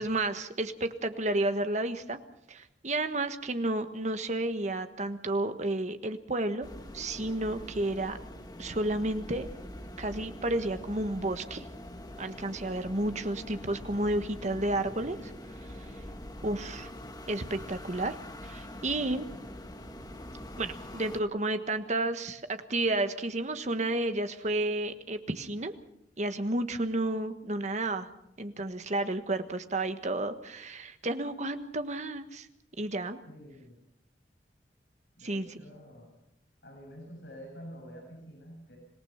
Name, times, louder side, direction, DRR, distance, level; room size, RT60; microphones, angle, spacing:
voice 1, 0.0-2.2 2.5-6.7 6.9-8.2 8.6-9.5 10.0-11.7 12.2-15.3 16.4-16.9 17.3-18.2 18.4-19.3 20.6-25.7 26.2-28.1 28.4-32.5 32.8-33.2 35.2-35.5, right 2 dB, 40° right, 9 dB, 1.4 m, -31 dB
sound 1, 6.6-21.2, left 1 dB, 25° left, 1.5 m, -44 dB
voice 2, 33.3-33.8 35.2-36.1 36.6-38.8, equal, 75° left, -1 dB, 7.1 m, -48 dB
26.0 x 18.5 x 5.8 m, 0.77 s
head